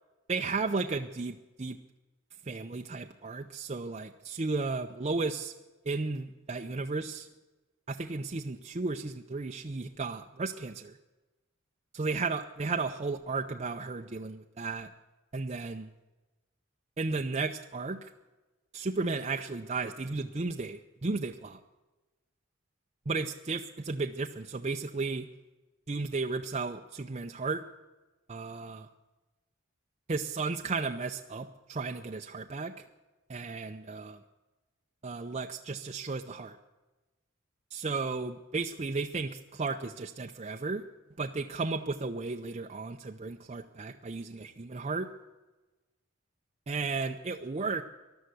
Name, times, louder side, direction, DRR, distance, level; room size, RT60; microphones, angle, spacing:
voice 1, 0.3-1.8 2.5-5.5 5.9-7.3 7.9-11.0 11.9-14.9 15.3-15.9 17.0-18.0 18.7-21.6 23.1-25.3 25.9-27.6 28.3-28.9 30.1-32.7 33.3-34.2 35.0-36.6 37.7-40.8 41.2-45.1 46.7-47.8, right 3 dB, 35° right, 4 dB, 0.6 m, -34 dB
14.5 x 11.5 x 8.2 m, 1.1 s
head